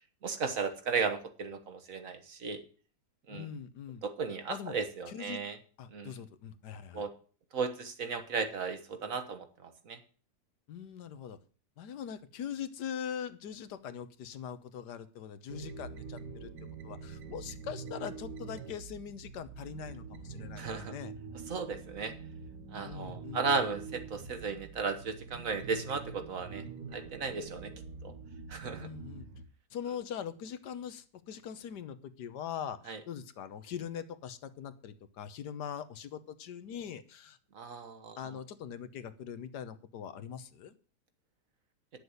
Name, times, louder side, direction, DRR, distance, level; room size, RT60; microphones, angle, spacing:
voice 1, 0.2-2.6 3.3-3.5 4.0-5.6 5.9-6.1 6.9-7.1 7.5-10.0 20.6-20.9 21.5-22.1 22.7-26.6 26.9-27.7 28.0-28.1 28.5-28.9 32.9-33.0 37.5-38.2, right 5 dB, 55° right, 8 dB, 1.6 m, -35 dB
voice 2, 3.3-4.0 4.5-4.7 5.1-5.4 5.8-7.1 10.7-11.4 11.8-16.5 16.8-21.1 22.8-23.5 28.8-29.3 29.7-37.4 38.2-40.7, left 8 dB, 90° left, 12 dB, 1.5 m, -42 dB
sound 1, 15.5-29.4, right 5 dB, 85° right, 1.8 m, -45 dB
9.7 x 6.8 x 7.9 m, 0.40 s
omnidirectional pair, 1.8 m